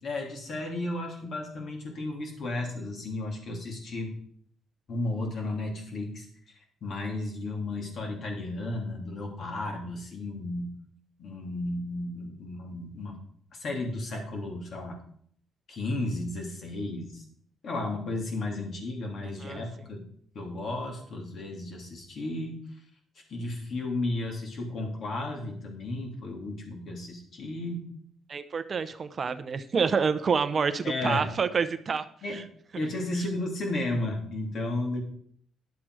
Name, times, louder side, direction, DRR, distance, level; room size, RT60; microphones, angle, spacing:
voice 1, 0.0-4.1 4.9-6.3 6.8-10.7 11.2-13.2 13.6-15.0 15.7-17.2 17.6-20.0 20.3-22.6 23.3-27.8 30.8-31.3 32.2-32.4 32.7-35.0, left 2 dB, 60° left, 1 dB, 3.1 m, -33 dB
voice 2, 28.3-32.4, right 5 dB, 45° right, 12 dB, 0.7 m, -28 dB
10.5 x 7.6 x 4.8 m, 0.62 s
cardioid pair, 90°, 0 cm